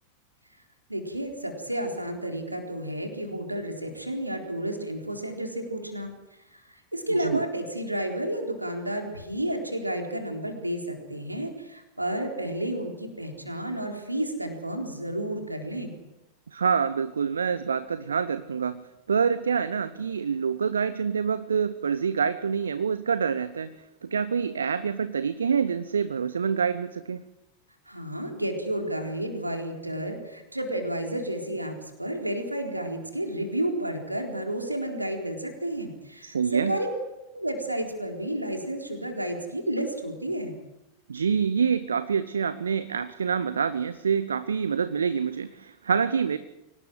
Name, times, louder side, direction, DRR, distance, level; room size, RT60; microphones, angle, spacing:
voice 1, 0.9-6.1 6.5-15.9 27.9-36.9 37.3-40.6, right 1 dB, 85° right, 3 dB, 4.0 m, -31 dB
voice 2, 16.5-23.8 24.0-27.2 36.2-36.8 41.1-46.4, right 6 dB, 70° right, 14 dB, 0.9 m, -26 dB
24.0 x 18.5 x 7.8 m, 0.97 s
figure-of-eight pair, 90°, 0 cm